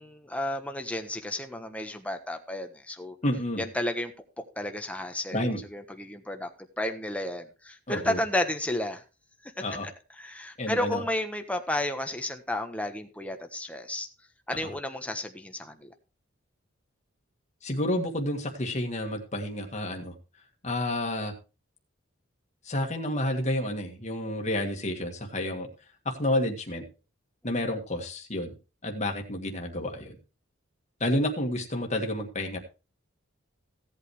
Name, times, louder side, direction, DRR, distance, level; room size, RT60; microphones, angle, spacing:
voice 1, 0.0-3.1 3.6-9.0 9.4-9.5 10.2-14.1 14.5-15.9, left 1 dB, 5° left, 5 dB, 1.3 m, -32 dB
voice 2, 3.2-3.6 5.3-5.6 7.9-8.2 9.6-9.9 10.6-11.0 14.6-14.7 17.6-20.1 20.6-21.3 22.7-25.7 26.1-26.8 27.4-28.5 28.8-30.2 31.0-32.6, left 1 dB, 35° left, 1 dB, 1.9 m, -30 dB
16.5 x 8.3 x 3.3 m, 0.31 s
head